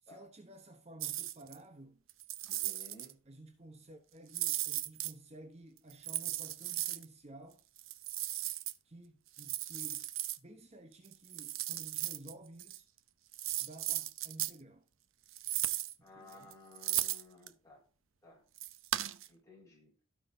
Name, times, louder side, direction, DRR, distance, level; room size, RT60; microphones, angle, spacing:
voice 1, 0.0-2.0 3.3-7.6 8.8-10.1 10.4-12.9 13.6-14.8 16.0-16.5, right 1 dB, 30° right, 0.9 m, -53 dB
sound 1, 1.0-1.6 2.1-3.1 4.3-5.1 5.9-7.1 7.8-8.7 9.4-10.4 11.1-12.3 12.6-12.8 13.3-14.6 15.3-15.9 16.3-17.5 18.6-19.3, right 14 dB, 75° right, 0.7 m, -36 dB
voice 2, 2.5-3.2 16.0-17.8 18.2-18.4 19.3-19.9, left 2 dB, 15° left, 5.0 m, -56 dB
16.5 x 5.9 x 2.7 m
head